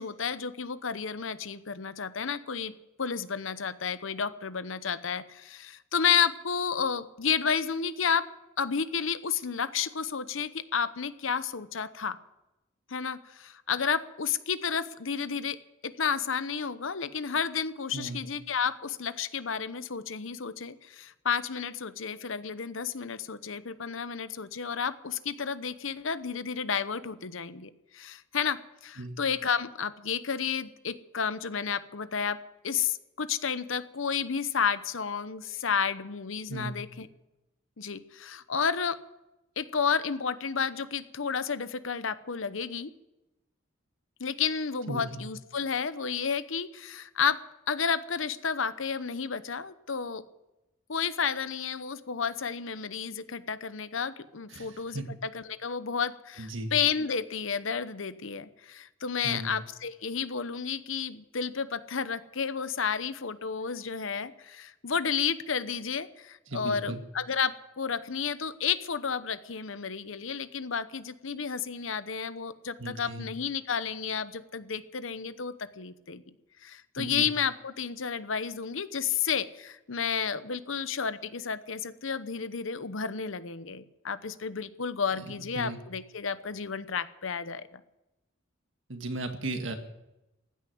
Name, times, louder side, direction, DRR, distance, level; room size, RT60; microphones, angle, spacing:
voice 1, 0.0-8.2 8.6-12.2 12.9-15.6 15.8-32.4 32.6-37.1 37.8-39.0 39.6-42.9 44.2-47.4 47.7-50.2 50.9-76.2 76.6-87.8, left 6 dB, 75° left, 13 dB, 0.9 m, -31 dB
voice 2, 44.9-45.2 54.5-55.0 56.4-56.7 59.2-59.5 66.5-67.0 72.8-73.3 77.0-77.3 85.1-85.8 88.9-89.8, right 2 dB, 65° right, 6 dB, 1.9 m, -36 dB
15.5 x 9.8 x 9.5 m, 0.95 s
head